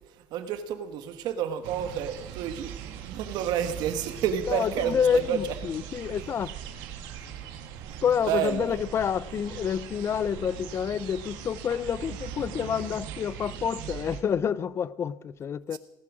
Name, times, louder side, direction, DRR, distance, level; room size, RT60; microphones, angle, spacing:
voice 1, 0.1-2.7 3.0-5.6 8.3-8.8 15.7-15.8, right 9 dB, 70° right, 1.4 m, -30 dB
sound 1, 1.6-14.2, right 9 dB, 85° right, 1.5 m, -40 dB
voice 2, 4.5-6.5 8.0-15.8, left 8 dB, 35° left, 0.4 m, -28 dB
18.0 x 9.8 x 6.2 m
cardioid pair, 125°, 7 cm